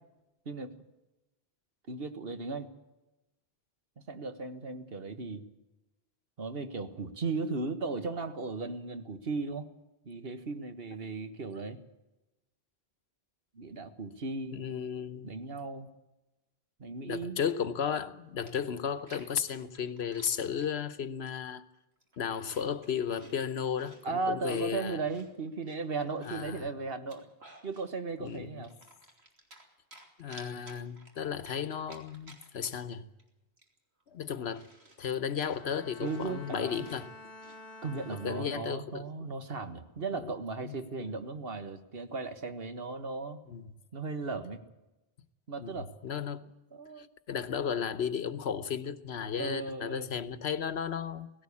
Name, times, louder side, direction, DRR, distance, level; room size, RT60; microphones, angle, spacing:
voice 1, 0.5-0.8 1.9-2.7 4.1-5.5 6.4-9.7 10.1-11.8 13.5-14.6 15.2-15.9 16.8-17.4 24.0-27.3 27.6-28.7 36.0-36.9 37.8-43.4 43.9-44.6 45.5-45.9 46.7-47.1 49.4-50.1, right 3 dB, 65° right, 1.7 m, -36 dB
voice 2, 14.5-15.4 17.1-21.6 22.2-25.0 26.2-26.7 28.2-28.6 30.2-33.1 34.1-34.7 35.0-37.1 38.1-39.4 40.1-40.3 40.6-41.2 43.5-43.7 45.6-46.4 47.0-51.3, left 7 dB, 85° left, 1.2 m, -34 dB
Chewing mastication, 18.5-20.7 21.3-21.6 22.0-24.0 24.4-26.5 26.9-27.9 28.2-29.6 29.9-32.9 33.2-33.3 33.6-37.6, right 2 dB, 90° right, 3.2 m, -55 dB
Bowed string instrument, 35.5-39.0 39.5-39.9, left 1 dB, 40° left, 1.2 m, -50 dB
18.0 x 17.0 x 8.5 m
omnidirectional pair, 1.0 m